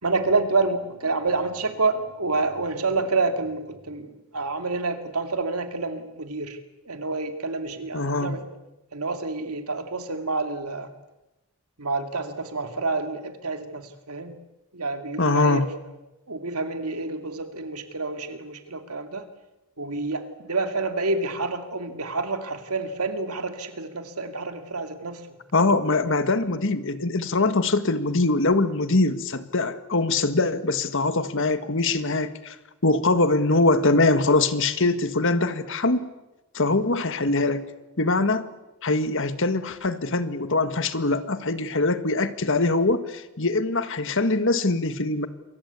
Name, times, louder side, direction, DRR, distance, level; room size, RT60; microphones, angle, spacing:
voice 1, 0.0-4.1 4.3-6.6 6.9-8.4 8.9-10.9 11.8-14.3 14.7-15.6 16.3-19.2 19.8-25.2, right 3 dB, 80° right, 7 dB, 2.7 m, -28 dB
voice 2, 7.9-8.4 15.2-15.7 25.5-32.6 32.8-36.1 36.5-37.7 38.0-38.5 38.8-45.3, left 2 dB, 60° left, 11 dB, 1.8 m, -23 dB
28.0 x 23.5 x 8.4 m, 1.0 s
head